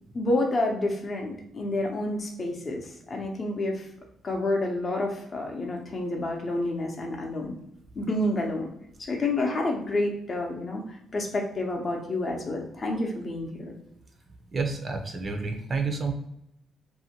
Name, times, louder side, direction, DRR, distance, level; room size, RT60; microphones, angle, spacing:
voice 1, 0.1-3.9 4.2-7.5 8.0-8.7 9.1-10.8 11.1-13.7, left 2 dB, 40° left, 1 dB, 0.6 m, -29 dB
voice 2, 14.5-16.1, right 4 dB, 40° right, 4 dB, 0.5 m, -29 dB
2.7 x 2.1 x 2.8 m, 0.78 s
cardioid pair, 90°, 0 cm